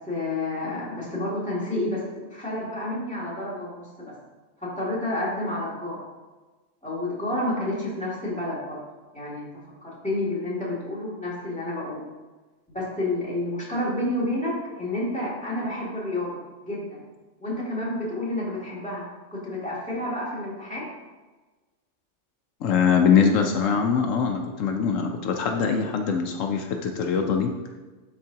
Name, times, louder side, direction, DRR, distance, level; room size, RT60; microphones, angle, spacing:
voice 1, 0.1-2.0 2.3-4.1 4.6-6.0 6.8-8.8 9.1-9.5 9.8-12.0 12.7-16.4 16.7-17.0 17.4-19.0 19.3-20.9, left 1 dB, 5° left, -8 dB, 2.4 m, -29 dB
voice 2, 22.6-27.5, left 6 dB, 80° left, 3 dB, 1.0 m, -22 dB
12.0 x 4.4 x 2.9 m, 1.2 s
omnidirectional pair, 1.3 m